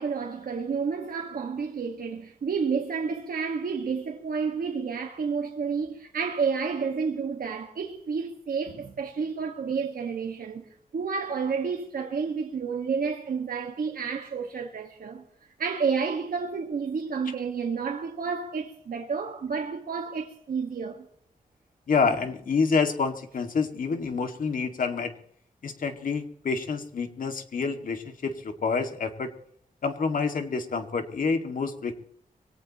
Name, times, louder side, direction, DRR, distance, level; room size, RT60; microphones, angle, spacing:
voice 1, 0.0-15.2 15.6-21.0, right 5 dB, 85° right, 1.6 m, -30 dB
voice 2, 21.9-25.1 25.6-29.3 29.8-32.0, left 5 dB, 70° left, 2.1 m, -28 dB
24.5 x 17.5 x 3.0 m
wide cardioid pair, 170°, 15 cm